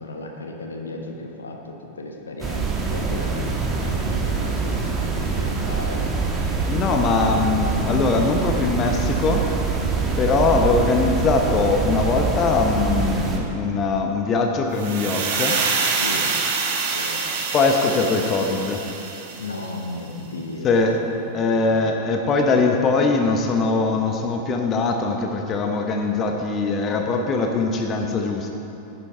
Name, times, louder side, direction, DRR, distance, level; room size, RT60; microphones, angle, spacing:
voice 1, 0.0-3.5 3.8-6.3 9.6-10.1 16.0-16.4 16.9-17.2 19.4-21.8, left 2 dB, 70° left, 2 dB, 1.1 m, -35 dB
sound 1, 2.4-13.4, right 4 dB, 20° right, 1.6 m, -24 dB
voice 2, 6.7-9.5 10.2-15.6 17.5-18.8 20.6-21.0 21.3-28.5, left 4 dB, 30° left, 3 dB, 0.9 m, -21 dB
sound 2, 14.7-19.8, right 5 dB, 50° right, 1.4 m, -26 dB
10.0 x 10.0 x 4.5 m, 2.9 s
figure-of-eight pair, 90°, 0 cm